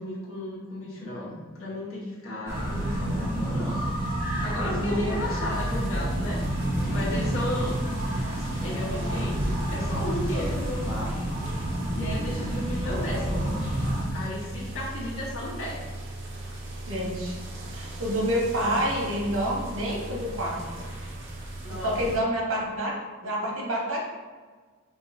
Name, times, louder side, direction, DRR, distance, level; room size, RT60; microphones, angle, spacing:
voice 1, 0.0-3.8 4.4-6.4 6.9-7.8 8.4-11.1 11.9-13.5 14.1-15.8 18.6-18.9 21.6-22.0, left 1 dB, 80° left, -6 dB, 1.3 m, -34 dB
sound 1, 2.5-14.1, right 1 dB, 10° right, 1.0 m, -29 dB
voice 2, 4.6-5.2 16.9-17.4 17.7-20.8 21.8-22.9 23.2-24.0, equal, 75° right, -2 dB, 1.0 m, -28 dB
sound 2, 5.5-22.2, right 1 dB, 60° right, 0.7 m, -38 dB
5.3 x 2.8 x 2.6 m, 1.4 s
head